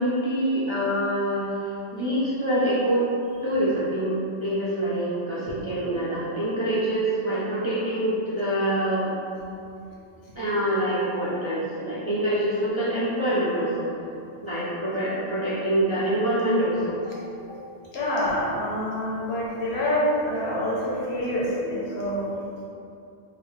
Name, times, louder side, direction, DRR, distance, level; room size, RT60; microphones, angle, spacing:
voice 1, 0.0-3.0 3.4-9.1 10.4-13.9 14.4-17.2, right 1 dB, 45° right, -10 dB, 0.4 m, -25 dB
voice 2, 17.9-22.4, equal, 70° left, -6 dB, 1.0 m, -26 dB
3.9 x 2.1 x 3.0 m, 2.6 s
omnidirectional pair, 1.1 m